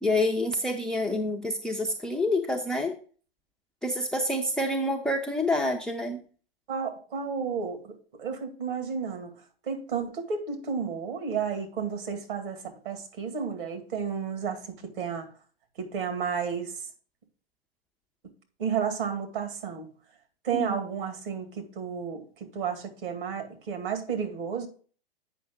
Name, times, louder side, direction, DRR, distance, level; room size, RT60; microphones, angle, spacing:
voice 1, 0.0-3.0 3.8-6.2 20.6-20.8, left 1 dB, ahead, 0.4 m, -27 dB
voice 2, 6.7-15.3 15.8-16.9 18.6-19.9 20.4-22.3 22.5-24.7, right 6 dB, 60° right, 2.2 m, -32 dB
8.3 x 5.5 x 3.6 m
hypercardioid pair, 120°, 30 cm